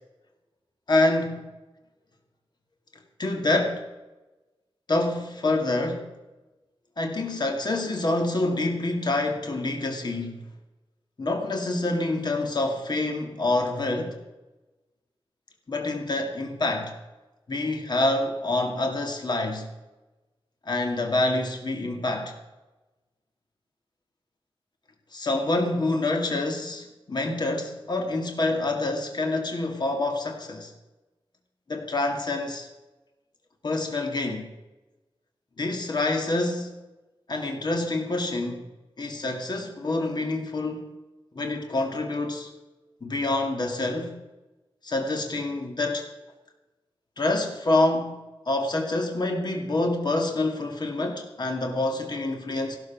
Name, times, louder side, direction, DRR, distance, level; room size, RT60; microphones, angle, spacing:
voice 1, 0.9-1.3 3.2-3.8 4.9-6.1 7.0-10.4 11.2-14.2 15.7-16.9 17.5-19.7 20.6-22.3 25.1-30.7 31.7-32.7 33.6-34.5 35.6-36.7 37.3-38.6 39.0-40.9 41.3-42.5 43.0-44.1 44.8-46.1 47.2-52.8, left 2 dB, 50° left, 2.2 m, -27 dB
15.5 x 12.5 x 6.0 m
wide cardioid pair, 110°, 10 cm